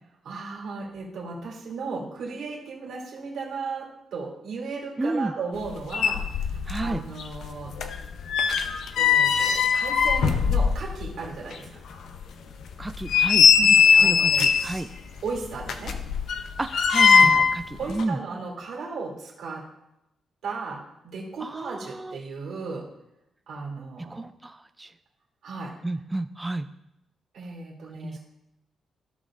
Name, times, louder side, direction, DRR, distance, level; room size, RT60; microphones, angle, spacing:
voice 1, 0.2-7.9 9.0-11.7 13.5-13.7 14.0-14.8 15.2-16.0 17.8-19.7 20.4-22.9 23.5-24.2 25.4-25.7 27.3-28.2, right 4 dB, 70° right, -3 dB, 2.7 m, -35 dB
voice 2, 5.0-5.3 6.7-7.0 12.8-13.5 14.0-14.9 16.6-18.2 21.4-22.2 24.1-24.9 25.8-26.7 28.0-28.2, right 2 dB, 10° right, 9 dB, 0.3 m, -31 dB
sound 1, 5.6-5.7 5.9-6.9 7.2-11.1 11.5-11.6 12.1-12.2 12.8-14.8 15.6-17.6 17.9-18.0, left 6 dB, 70° left, 0.7 m, -20 dB
15.5 x 6.2 x 2.5 m, 0.85 s
cardioid pair, 135°, 0 cm